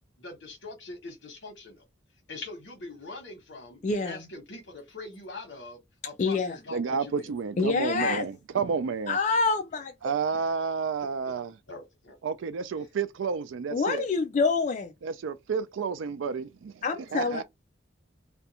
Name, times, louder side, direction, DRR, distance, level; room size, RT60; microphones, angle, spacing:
voice 1, 0.2-1.9 2.3-7.3 8.6-8.7 11.7-12.2 12.8-12.9, left 3 dB, 70° left, 1.1 m, -43 dB
voice 2, 3.8-4.3 6.2-6.6 7.6-8.3 9.1-9.9 13.7-14.9 16.8-17.4, left 4 dB, 40° left, 0.3 m, -26 dB
voice 3, 6.7-9.2 10.0-11.5 12.2-14.1 15.0-16.8 17.1-17.4, right 5 dB, 80° right, 0.4 m, -30 dB
2.5 x 2.2 x 2.8 m
head